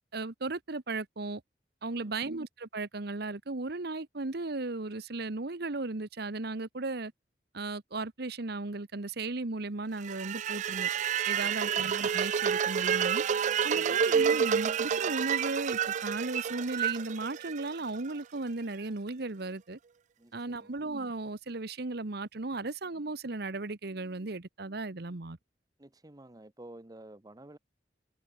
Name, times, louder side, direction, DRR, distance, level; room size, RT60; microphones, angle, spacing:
voice 1, 0.0-1.4 1.8-7.1 7.5-10.9 11.3-13.2 13.6-19.8 20.3-25.4, right 3 dB, 65° right, 1.1 m, -36 dB
voice 2, 1.9-2.2 11.4-11.7 13.7-14.0 20.2-20.7 25.8-27.6, right 1 dB, 20° right, 1.0 m, -51 dB
sound 1, 10.0-18.1, right 7 dB, 45° right, 0.3 m, -29 dB
head